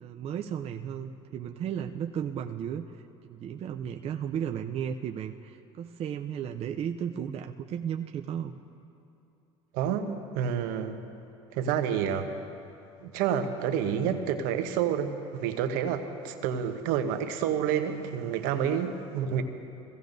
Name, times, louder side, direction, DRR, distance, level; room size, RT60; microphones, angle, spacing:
voice 1, 0.0-8.5, right 8 dB, 40° right, 5 dB, 0.5 m, -34 dB
voice 2, 9.7-11.0 11.5-12.3 13.0-19.4, right 8 dB, 70° right, 7 dB, 1.0 m, -29 dB
21.5 x 16.0 x 2.7 m, 2.8 s
supercardioid pair, 85°, 15 cm